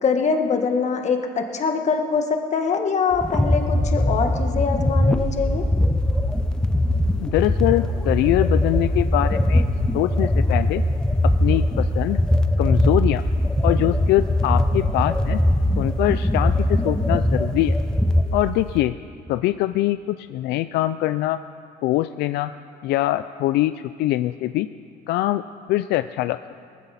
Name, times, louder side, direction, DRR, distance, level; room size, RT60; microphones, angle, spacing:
voice 1, 0.0-5.6, left 5 dB, 45° left, 5 dB, 1.6 m, -23 dB
sound 1, 3.1-18.8, left 1 dB, 5° left, 0.7 m, -21 dB
voice 2, 7.2-9.7 9.9-10.8 11.4-12.2 12.6-13.2 13.6-15.4 15.8-17.7 18.3-18.9 19.3-21.4 21.8-22.5 22.8-23.7 24.0-24.7 25.1-25.4 25.7-26.4, left 15 dB, 80° left, 12 dB, 0.4 m, -23 dB
19.5 x 14.5 x 4.2 m, 2.4 s
cardioid pair, 110°, 17 cm